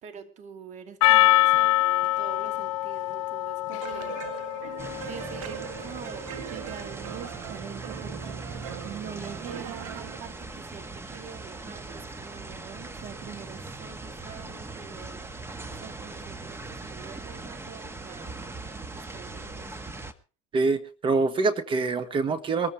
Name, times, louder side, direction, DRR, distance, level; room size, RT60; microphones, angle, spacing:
voice 1, 0.0-4.2 4.9-18.4 18.9-19.8, right 7 dB, 45° right, 9 dB, 2.5 m, -45 dB
Percussion, 1.0-5.6, left 17 dB, 75° left, 0.7 m, -24 dB
sound 1, 3.8-10.2, right 11 dB, 85° right, 1.7 m, -40 dB
sound 2, 4.8-20.1, right 3 dB, 15° right, 1.5 m, -40 dB
voice 2, 20.5-22.7, right 3 dB, 30° right, 12 dB, 1.4 m, -25 dB
23.0 x 14.0 x 3.2 m, 0.34 s
supercardioid pair, 105°, 16 cm